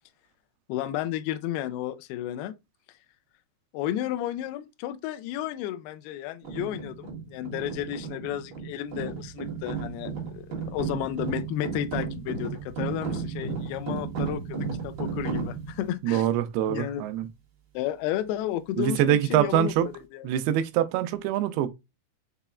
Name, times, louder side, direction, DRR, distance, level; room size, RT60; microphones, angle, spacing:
voice 1, 0.7-2.5 3.7-10.5 10.7-16.3 16.7-17.1 17.7-20.3, left 12 dB, 85° left, 2.5 m, -32 dB
sound 1, 6.4-15.9, right 5 dB, 50° right, 2.6 m, -34 dB
voice 2, 16.0-17.3 18.8-19.9 20.2-21.7, right 11 dB, 85° right, 2.5 m, -24 dB
6.8 x 3.0 x 2.3 m
omnidirectional pair, 4.5 m